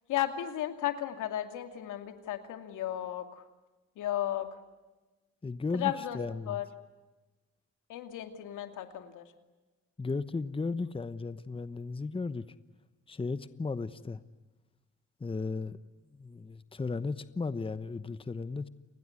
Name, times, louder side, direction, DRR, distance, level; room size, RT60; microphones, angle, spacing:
voice 1, 0.1-3.4 4.0-4.5 5.7-6.2 6.5-6.7 7.9-9.3, left 12 dB, 85° left, 7 dB, 2.5 m, -34 dB
voice 2, 5.4-6.6 10.0-12.4 13.1-14.2 15.2-15.8 16.1-18.7, left 4 dB, 20° left, 13 dB, 1.0 m, -35 dB
30.0 x 20.5 x 9.7 m, 1.1 s
cardioid pair, 90°, 30 cm